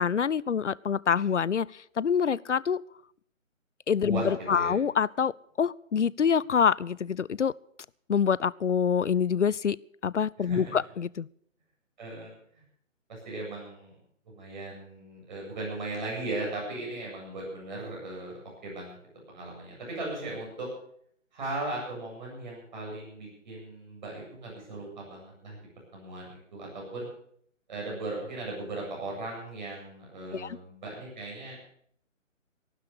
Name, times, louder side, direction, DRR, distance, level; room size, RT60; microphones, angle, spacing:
voice 1, 0.0-2.8 3.9-5.3 5.6-7.5 8.1-9.8 10.0-11.3 30.3-30.6, left 7 dB, 65° left, 23 dB, 0.5 m, -26 dB
voice 2, 4.0-4.7 10.4-10.8 12.0-12.4 13.1-13.9 14.2-18.9 19.3-20.7 21.3-25.6 25.9-27.1 27.7-31.6, right 2 dB, 35° right, -2 dB, 8.0 m, -37 dB
14.5 x 12.0 x 6.8 m, 0.64 s
figure-of-eight pair, 145°, 39 cm